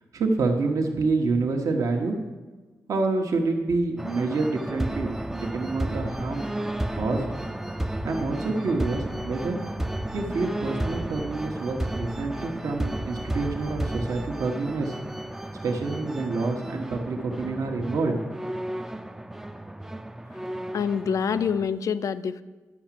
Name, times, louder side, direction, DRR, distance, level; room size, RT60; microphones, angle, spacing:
voice 1, 0.1-2.2 2.9-6.5 6.9-7.3 8.0-9.6 10.1-15.0 15.6-18.2 18.5-18.6, right 3 dB, 70° right, 2 dB, 1.2 m, -27 dB
sound 1, 4.0-21.7, right 1 dB, 5° right, 0.4 m, -33 dB
voice 2, 20.7-22.4, left 7 dB, 70° left, 14 dB, 0.4 m, -26 dB
10.5 x 6.0 x 7.4 m, 1.3 s
cardioid pair, 100°, 6 cm